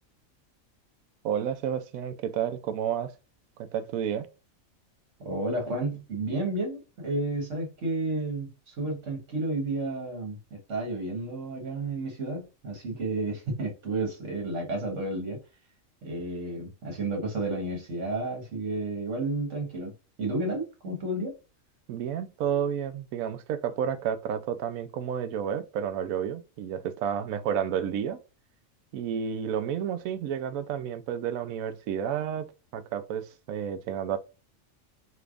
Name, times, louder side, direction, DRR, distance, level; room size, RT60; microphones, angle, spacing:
voice 1, 1.2-3.1 3.7-4.3 21.9-28.2 28.9-32.5 32.7-34.2, right 8 dB, 90° right, 1.0 m, -31 dB
voice 2, 5.2-15.4 16.0-19.9 20.2-21.3, right 2 dB, 65° right, 1.7 m, -31 dB
3.3 x 3.0 x 2.4 m
omnidirectional pair, 1.4 m